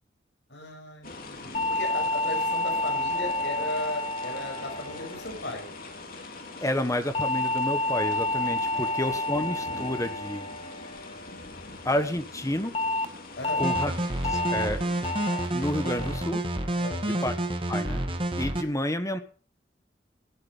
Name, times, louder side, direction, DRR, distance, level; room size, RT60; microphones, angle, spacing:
voice 1, 0.5-5.7 8.7-8.8 13.4-13.6 16.8-17.2, left 2 dB, 85° left, 2 dB, 6.6 m, -36 dB
sound 1, 1.0-16.2, left 3 dB, 55° left, 3.0 m, -43 dB
sound 2, 1.5-6.0 7.1-11.6 12.7-13.0 13.4-13.8 14.2-14.6 15.0-15.4 15.8-16.2 16.6-17.0, left 2 dB, 35° left, 1.1 m, -30 dB
voice 2, 6.6-10.5 11.8-12.7 13.6-13.9 14.2-14.9 15.5-16.4 17.2-17.3 17.7-18.1 18.4-19.2, left 1 dB, 20° left, 10 dB, 1.2 m, -29 dB
sound 3, 13.6-18.6, right 1 dB, 30° right, 2.0 m, -29 dB
16.0 x 11.0 x 5.4 m, 0.41 s
head